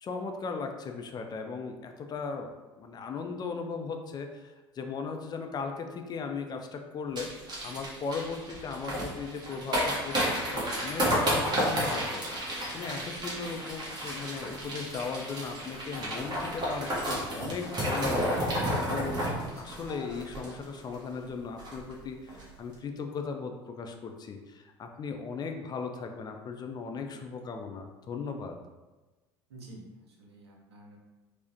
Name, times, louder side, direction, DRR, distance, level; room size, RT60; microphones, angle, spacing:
voice 1, 0.0-2.5 2.8-12.3 12.7-19.3 19.6-28.6, left 5 dB, 30° left, 4 dB, 0.4 m, -37 dB
sound 1, 7.2-21.0 21.2-21.3 21.6-21.9 22.3-22.4, equal, 30° right, 1.2 m, -31 dB
voice 2, 29.5-31.0, right 2 dB, 75° right, -1 dB, 0.7 m, -50 dB
4.6 x 2.1 x 2.8 m, 1.2 s
figure-of-eight pair, 65°, 14 cm